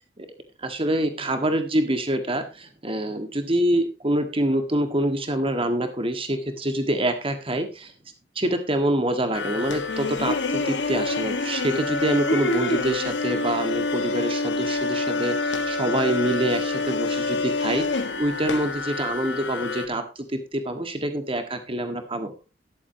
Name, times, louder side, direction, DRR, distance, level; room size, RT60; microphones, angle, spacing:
voice 1, 0.6-7.9 8.4-22.3, right 1 dB, 30° right, 7 dB, 1.7 m, -26 dB
sound 1, 9.3-19.9, left 3 dB, 70° left, 1.6 m, -27 dB
13.5 x 11.0 x 2.9 m, 0.28 s
head